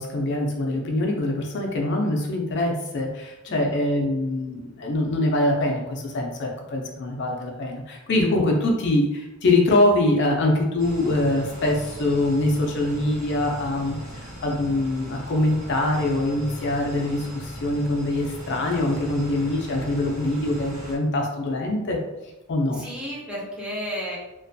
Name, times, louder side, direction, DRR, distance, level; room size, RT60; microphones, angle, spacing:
voice 1, 0.0-22.0 22.5-22.8, left 1 dB, 55° left, 0 dB, 0.4 m, -24 dB
sound 1, 10.8-21.0, equal, 90° right, 0.9 m, -38 dB
voice 2, 22.7-24.2, equal, 5° right, -5 dB, 0.5 m, -32 dB
2.5 x 2.2 x 2.5 m, 0.99 s
head